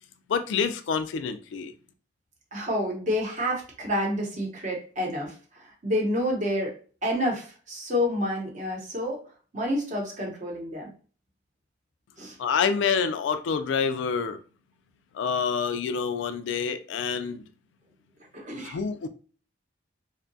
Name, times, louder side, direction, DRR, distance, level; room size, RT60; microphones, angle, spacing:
voice 1, 0.3-1.7 12.4-14.4 15.1-17.5 18.6-19.1, left 6 dB, 75° left, 10 dB, 0.3 m, -27 dB
voice 2, 2.5-6.7 7.0-9.2 9.5-10.9 12.2-12.4 18.3-18.8, left 1 dB, 40° right, -1 dB, 0.8 m, -29 dB
2.7 x 2.2 x 2.6 m, 0.40 s
head